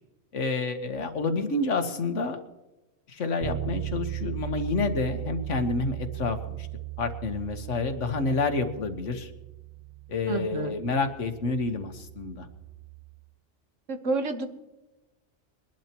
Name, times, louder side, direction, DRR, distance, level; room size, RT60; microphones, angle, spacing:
voice 1, 0.3-2.4 3.1-6.7 7.0-9.3 10.1-12.5, left 3 dB, 80° left, 7 dB, 1.6 m, -29 dB
Bass guitar, 3.4-13.2, right 15 dB, 45° right, 0.6 m, -38 dB
voice 2, 10.3-10.7 13.9-14.5, right 3 dB, 90° right, 7 dB, 1.6 m, -29 dB
22.0 x 12.0 x 3.0 m, 1.1 s
omnidirectional pair, 1.3 m